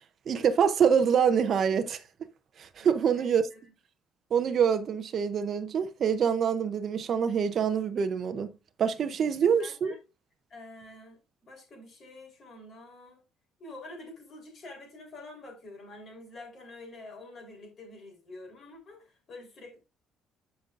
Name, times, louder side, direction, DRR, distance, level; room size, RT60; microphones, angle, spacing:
voice 1, 0.3-2.0 2.6-3.4 4.3-8.5 8.8-9.9, right 7 dB, 35° right, 0.6 m, -25 dB
voice 2, 2.8-3.6 9.4-10.0 10.5-13.2 13.6-19.8, left 2 dB, 35° left, 3.3 m, -47 dB
12.5 x 5.3 x 2.4 m
cardioid pair, 175°, 0 cm